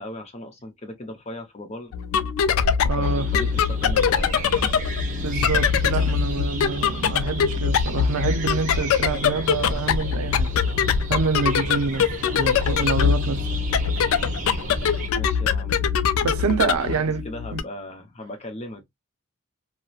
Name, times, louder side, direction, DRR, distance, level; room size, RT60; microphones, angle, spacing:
voice 1, 0.0-1.9 3.0-4.8 15.1-15.9 16.6-18.8, left 1 dB, 30° left, 0.6 m, -38 dB
sound 1, 1.9-17.6, left 7 dB, 75° left, 0.3 m, -23 dB
voice 2, 2.8-3.3 5.2-10.5 11.1-13.6 16.2-17.2 17.5-17.6, right 4 dB, 80° right, 0.5 m, -27 dB
sound 2, 3.0-15.1, right 3 dB, 35° right, 0.7 m, -33 dB
2.8 x 2.1 x 2.3 m
head